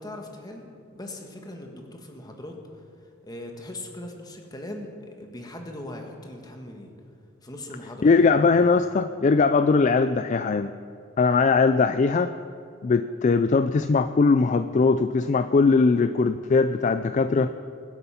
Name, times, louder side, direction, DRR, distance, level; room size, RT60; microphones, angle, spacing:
voice 1, 0.0-2.6 3.2-6.9 7.4-8.4, left 1 dB, 20° left, 3 dB, 1.6 m, -39 dB
voice 2, 8.0-10.7 11.2-12.3 12.8-17.5, left 4 dB, 40° left, 11 dB, 0.3 m, -20 dB
21.5 x 8.0 x 5.8 m, 2.5 s
head